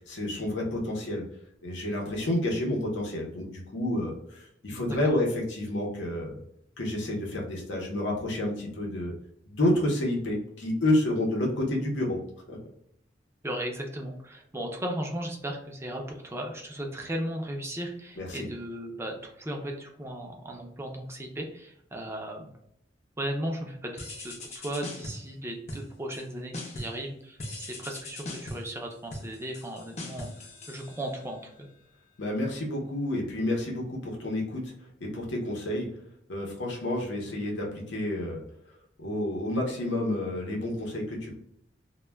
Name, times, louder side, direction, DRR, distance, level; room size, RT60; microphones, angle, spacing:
voice 1, 0.1-1.2 1.6-6.4 6.8-9.1 9.5-12.2 12.5-12.6 18.2-18.5 32.2-34.7 35.0-35.9 36.3-38.4 39.0-41.3, left 1 dB, 85° left, -1 dB, 0.7 m, -29 dB
voice 2, 4.7-5.1 13.4-22.5 23.2-30.3 30.7-31.7, right 1 dB, 15° right, 1 dB, 0.5 m, -36 dB
sound 1, 24.0-25.3 25.7-26.3 26.5-27.0 27.4-31.4, left 1 dB, 40° left, 0.6 m, -40 dB
2.2 x 2.2 x 3.3 m, 0.73 s
head